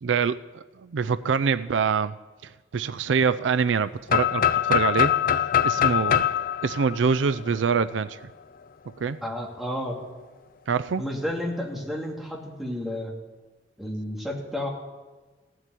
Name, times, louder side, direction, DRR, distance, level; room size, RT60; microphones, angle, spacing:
voice 1, 0.0-2.1 2.4-5.1 5.6-6.3 6.6-8.2 9.0-9.2 10.7-11.0, right 5 dB, 85° right, 14 dB, 0.4 m, -25 dB
sound 1, 4.1-7.9, left 10 dB, 50° left, 0.5 m, -23 dB
voice 2, 9.2-10.0 11.0-13.1 13.8-14.7, left 1 dB, ahead, -1 dB, 2.5 m, -31 dB
16.0 x 7.8 x 9.9 m, 1.3 s
head